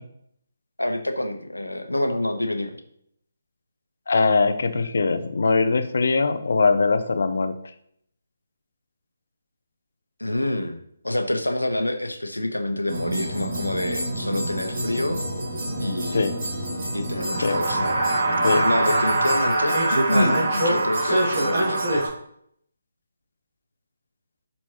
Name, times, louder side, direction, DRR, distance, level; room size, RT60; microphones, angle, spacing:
voice 1, 0.8-2.7 10.2-15.3 15.8-16.3 16.9-18.0 18.6-19.8 20.1-22.1, left 1 dB, 85° left, 6 dB, 1.1 m, -27 dB
voice 2, 4.1-7.5 16.1-16.3 17.4-17.6 18.4-18.7, left 4 dB, 55° left, 10 dB, 0.8 m, -21 dB
sound 1, 12.9-22.1, right 1 dB, 45° right, 2.3 m, -24 dB
11.5 x 4.2 x 3.1 m, 0.70 s
figure-of-eight pair, 145°, 0 cm